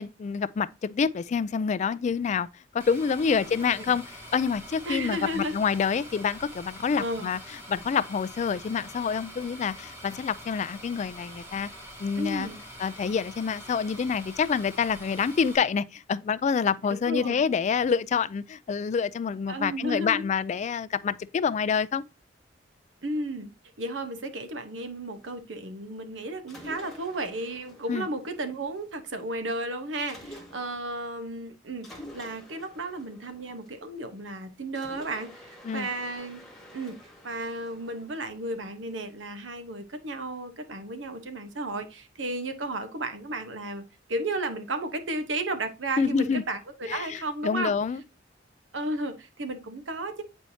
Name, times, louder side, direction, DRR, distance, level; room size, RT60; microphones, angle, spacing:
voice 1, 0.0-2.5 2.7-11.7 12.0-12.5 12.8-22.0 27.9-28.1 35.6-35.9 46.0-46.4 46.9-48.0, left 6 dB, 40° left, 0.3 m, -27 dB
sound 1, 2.8-15.6, equal, 15° right, 1.5 m, -45 dB
voice 2, 3.3-3.7 4.9-5.5 7.0-7.3 12.2-12.6 16.9-17.4 19.5-20.2 23.0-23.5 23.8-36.4 36.7-37.0 37.2-43.8 44.1-47.7 48.7-50.2, right 1 dB, 85° right, 1.0 m, -33 dB
Mechanisms, 26.5-28.9 30.1-30.9 31.8-34.1 34.7-38.9, left 1 dB, 5° left, 1.4 m, -49 dB
8.2 x 4.5 x 2.7 m
head